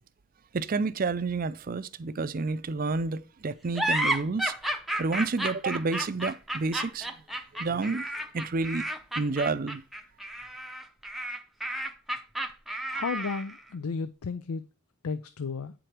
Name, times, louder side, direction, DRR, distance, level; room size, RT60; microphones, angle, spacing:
voice 1, 0.5-4.5 5.0-7.1 7.6-8.0 8.3-8.8 9.2-9.8, right 3 dB, 40° right, 0.5 m, -29 dB
sound 1, 3.7-13.6, right 1 dB, ahead, 0.6 m, -32 dB
voice 2, 12.9-14.6 15.0-15.7, left 5 dB, 85° left, 0.5 m, -33 dB
8.8 x 5.0 x 4.4 m
head